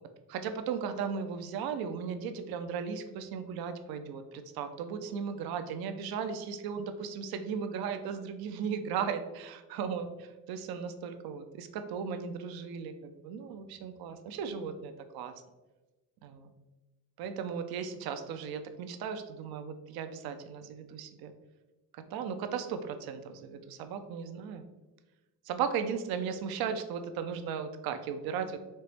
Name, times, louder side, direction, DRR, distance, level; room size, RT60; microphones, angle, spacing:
voice 1, 0.3-15.3 16.2-16.5 17.2-21.3 22.1-24.6 25.4-28.6, right 6 dB, 65° right, 8 dB, 0.6 m, -36 dB
4.4 x 3.0 x 3.3 m, 1.1 s
cardioid pair, 95°, 39 cm